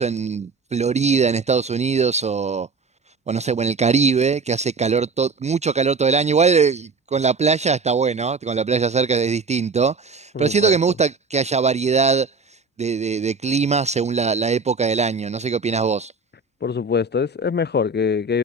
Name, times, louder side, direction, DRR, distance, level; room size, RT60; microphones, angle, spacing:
voice 1, 0.0-2.7 3.3-12.3 12.8-16.1, right 5 dB, 25° right, 0.4 m, -20 dB
voice 2, 10.4-10.7 16.6-18.4, left 6 dB, 35° left, 1.6 m, -23 dB
cardioid pair, 90°, 30 cm